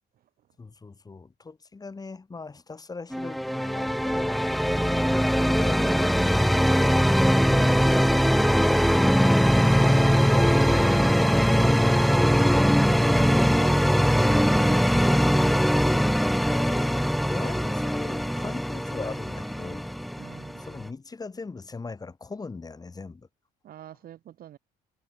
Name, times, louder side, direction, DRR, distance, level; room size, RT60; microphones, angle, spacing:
voice 1, 0.6-4.5 5.3-7.1 8.9-11.5 16.5-19.9 20.6-23.3, left 4 dB, 20° left, 5.7 m, -39 dB
sound 1, 3.1-20.9, equal, ahead, 0.9 m, -21 dB
voice 2, 4.7-5.2 12.9-13.9 14.2-15.4 20.2-20.6 23.6-24.6, right 11 dB, 60° right, 4.0 m, -43 dB
cardioid pair, 110°, 17 cm